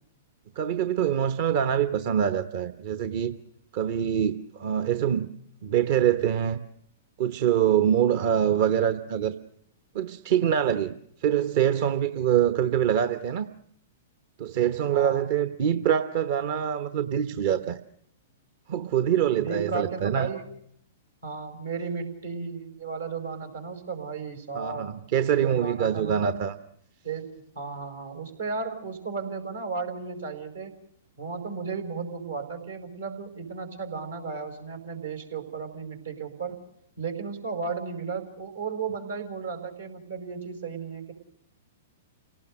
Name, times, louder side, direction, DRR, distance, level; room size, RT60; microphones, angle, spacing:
voice 1, 0.5-3.4 3.7-5.3 5.6-6.6 7.2-9.3 9.9-10.9 11.2-13.5 14.4-17.8 18.7-20.3 24.5-26.5, right 9 dB, 55° right, 11 dB, 1.0 m, -24 dB
voice 2, 14.9-15.2 19.3-20.4 21.2-24.9 25.4-26.4 27.0-30.7 31.2-36.6 37.0-41.1, right 5 dB, 80° right, 5 dB, 5.0 m, -34 dB
29.0 x 18.0 x 6.5 m, 0.71 s
hypercardioid pair, 110°, 0 cm